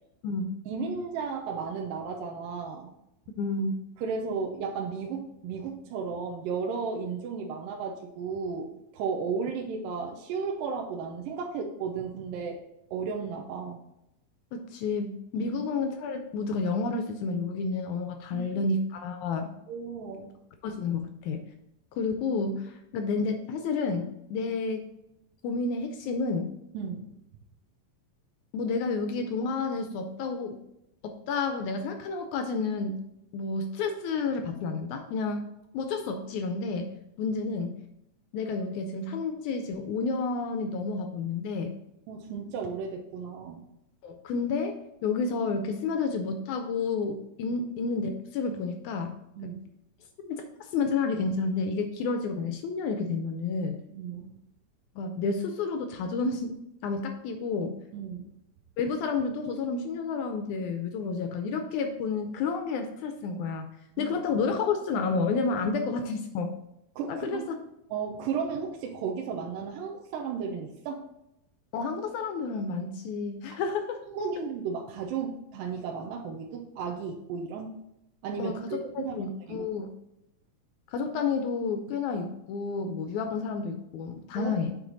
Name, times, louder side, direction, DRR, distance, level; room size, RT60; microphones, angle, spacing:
voice 1, 0.7-2.9 4.0-8.7 8.9-12.6 12.9-13.8 15.4-15.5 18.3-18.6 19.7-20.3 26.7-27.1 42.1-43.7 49.4-49.6 53.9-54.3 57.9-58.3 64.0-64.1 65.8-65.9 67.0-67.5 67.9-71.0 74.1-77.7 78.2-79.7 84.4-84.5, right 5 dB, 85° right, 0 dB, 2.4 m, -34 dB
voice 2, 3.4-3.7 14.7-19.5 20.6-21.4 22.0-24.8 25.4-26.5 28.5-30.6 31.0-33.0 33.3-35.4 35.7-36.9 37.2-37.8 38.3-41.8 44.0-44.8 45.0-49.2 49.4-49.5 50.3-53.8 55.0-56.6 56.8-57.8 58.8-63.7 64.0-66.5 67.1-67.4 71.7-74.0 78.4-79.9 80.9-84.8, left 4 dB, 80° left, 6 dB, 1.8 m, -30 dB
8.2 x 4.4 x 3.9 m, 0.82 s
omnidirectional pair, 4.0 m